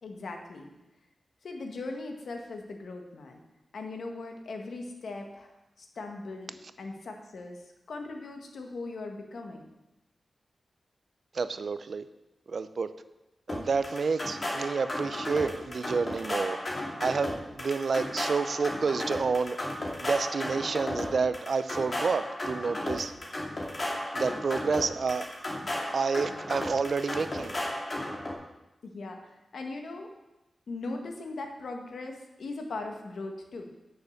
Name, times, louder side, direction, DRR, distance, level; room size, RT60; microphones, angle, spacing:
voice 1, 0.0-0.7 1.4-3.4 3.7-5.5 5.8-7.6 7.9-9.7 28.8-30.1 30.7-33.7, left 3 dB, 80° left, 3 dB, 1.5 m, -39 dB
voice 2, 11.3-12.0 12.5-12.9 13.5-16.6 17.0-19.6 20.0-23.1 24.1-25.3 25.9-27.5, right 5 dB, 60° right, 12 dB, 0.5 m, -29 dB
sound 1, 13.5-28.3, left 1 dB, 40° left, 2.4 m, -34 dB
9.6 x 6.6 x 6.5 m, 0.97 s
wide cardioid pair, 105°, 0 cm